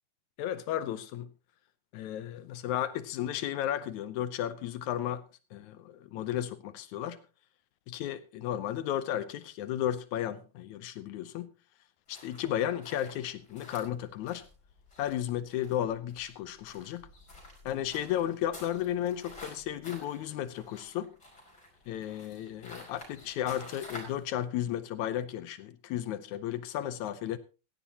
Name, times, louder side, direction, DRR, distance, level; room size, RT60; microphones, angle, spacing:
voice 1, 0.4-1.3 1.9-5.3 5.5-7.2 7.9-11.5 12.1-14.4 15.0-17.1 17.7-21.1 21.9-27.4, left 11 dB, 80° left, 2.2 m, -34 dB
sound 1, 12.1-24.2, left 2 dB, 35° left, 6.0 m, -50 dB
16.5 x 14.5 x 2.9 m
omnidirectional pair, 3.4 m